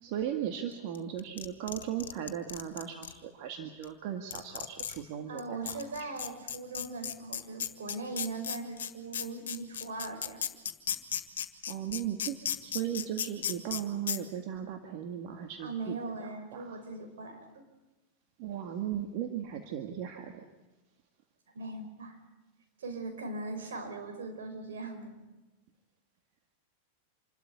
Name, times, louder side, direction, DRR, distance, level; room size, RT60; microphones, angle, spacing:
voice 1, 0.0-5.8 11.7-16.8 18.4-20.4, right 10 dB, 55° right, 5 dB, 1.9 m, -37 dB
sound 1, 0.9-3.1 3.8-3.9 4.3-5.0 5.4-5.5 5.7-13.8 14.1-14.2, left 9 dB, 75° left, 1.8 m, -34 dB
voice 2, 5.3-10.5 15.6-17.4 21.5-22.2 22.8-25.1, right 3 dB, 75° right, 5 dB, 4.8 m, -40 dB
27.0 x 13.0 x 9.5 m, 1.1 s
hypercardioid pair, 100°, 0 cm